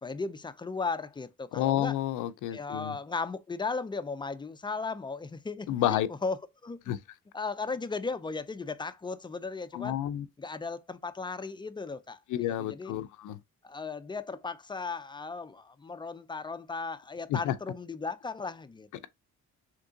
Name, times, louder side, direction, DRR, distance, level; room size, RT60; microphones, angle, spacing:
voice 1, 0.0-2.0 2.5-7.0 7.3-10.0 10.4-12.2 12.5-12.9 13.6-19.1, left 4 dB, 15° left, 0.3 m, -36 dB
voice 2, 1.5-3.0 5.7-6.1 6.9-7.0 9.7-10.3 12.3-13.4 17.3-17.5, left 12 dB, 80° left, 0.5 m, -30 dB
3.6 x 2.9 x 2.6 m
cardioid pair, 90°, 30 cm